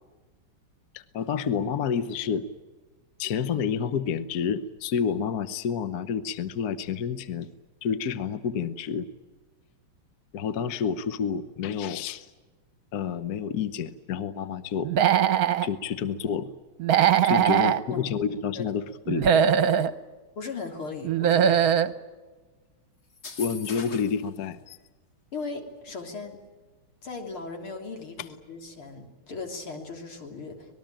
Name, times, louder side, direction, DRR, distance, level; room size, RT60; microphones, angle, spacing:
voice 1, 0.9-2.5 3.2-7.5 7.8-9.1 10.3-12.3 12.9-14.9 15.6-16.5 17.2-19.3 23.4-24.8 28.2-28.3, left 7 dB, 55° left, 12 dB, 1.4 m, -29 dB
Human voice / Animal, 14.8-15.7 16.8-17.8 19.1-19.9 21.0-21.9, right 9 dB, 55° right, 1.2 m, -21 dB
voice 2, 20.4-21.6 25.3-26.4 27.0-30.7, left 4 dB, 90° left, 3 dB, 4.2 m, -37 dB
sound 1, 23.1-24.3, left 4 dB, 35° left, 1.5 m, -40 dB
26.0 x 20.0 x 9.0 m, 1.3 s
omnidirectional pair, 2.3 m